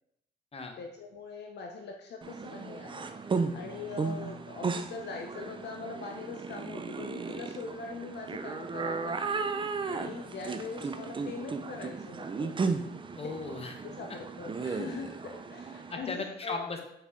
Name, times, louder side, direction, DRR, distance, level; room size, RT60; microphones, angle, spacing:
voice 1, 0.8-9.5 9.9-12.5 13.8-16.6, left 4 dB, 60° left, 2 dB, 0.7 m, -42 dB
sound 1, 2.2-15.9, right 4 dB, 25° right, 0.5 m, -35 dB
voice 2, 13.2-13.8 15.9-16.8, left 3 dB, 30° left, 4 dB, 1.1 m, -36 dB
7.3 x 4.1 x 3.7 m, 0.80 s
cardioid pair, 90°, 20 cm